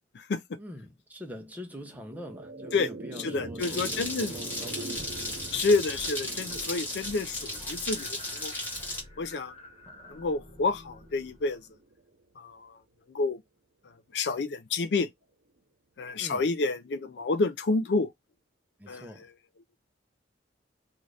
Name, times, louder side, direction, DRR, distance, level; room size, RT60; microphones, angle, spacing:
voice 1, 0.6-5.6 16.2-16.5 18.8-19.3, equal, 10° right, 0.7 m, -44 dB
sound 1, 1.7-12.2, right 2 dB, 60° right, 0.6 m, -45 dB
voice 2, 3.2-4.3 5.5-8.5 9.2-9.5 10.1-11.6 12.4-12.7 13.1-13.4 14.1-15.1 16.0-18.1 18.9-19.1, left 3 dB, 70° left, 0.4 m, -29 dB
sound 2, 3.6-9.0, left 1 dB, 10° left, 1.1 m, -35 dB
sound 3, 5.0-6.2 6.4-6.8 7.0-11.8, left 1 dB, 35° left, 0.9 m, -50 dB
2.6 x 2.5 x 3.2 m
head